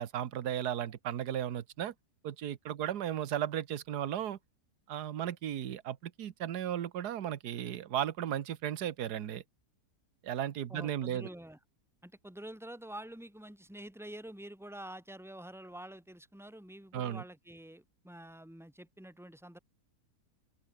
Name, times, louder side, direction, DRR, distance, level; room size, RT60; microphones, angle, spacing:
voice 1, 0.0-1.9 2.2-4.4 4.9-9.4 10.2-11.3 16.9-17.2, right 10 dB, 75° right, 1.6 m, -35 dB
voice 2, 10.7-11.6 12.0-19.6, right 1 dB, ahead, 4.5 m, -47 dB
omnidirectional pair, 1.8 m